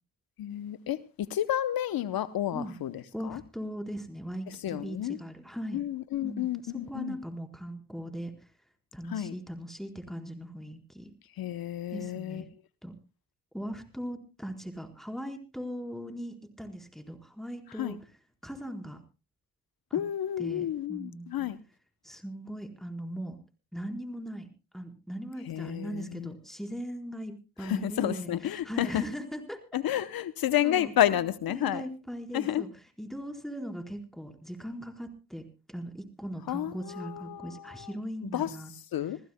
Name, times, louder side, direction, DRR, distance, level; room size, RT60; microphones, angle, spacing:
voice 1, 0.4-3.4 4.5-5.2 5.7-7.2 9.1-9.3 11.4-12.4 17.8-18.0 19.9-21.6 25.5-26.3 27.6-29.0 29.7-31.9 32.3-32.6 36.5-37.9 38.2-38.5 38.9-39.2, left 12 dB, 65° left, 15 dB, 0.8 m, -31 dB
voice 2, 3.1-5.9 6.2-8.3 8.9-11.1 11.9-12.5 12.8-12.9 13.5-18.0 18.4-19.0 19.9-20.0 20.4-21.3 22.0-23.4 23.7-24.5 24.7-29.6 29.9-30.0 30.6-30.9 31.5-38.7, equal, ahead, 4 dB, 4.2 m, -39 dB
26.5 x 15.5 x 2.2 m, 0.30 s
supercardioid pair, 50°, 38 cm